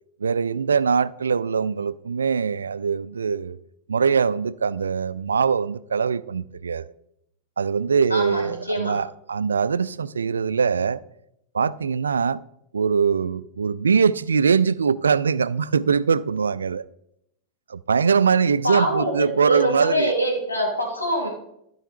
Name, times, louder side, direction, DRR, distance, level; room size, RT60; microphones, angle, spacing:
voice 1, 0.2-3.6 3.9-6.9 7.6-11.0 11.5-12.4 12.7-16.9 17.7-20.1, right 6 dB, 70° right, 0.3 m, -22 dB
voice 2, 8.1-9.0 18.6-19.1 19.4-21.3, equal, 80° left, 3.0 m, -24 dB
12.5 x 5.6 x 4.5 m
figure-of-eight pair, 90°, 0 cm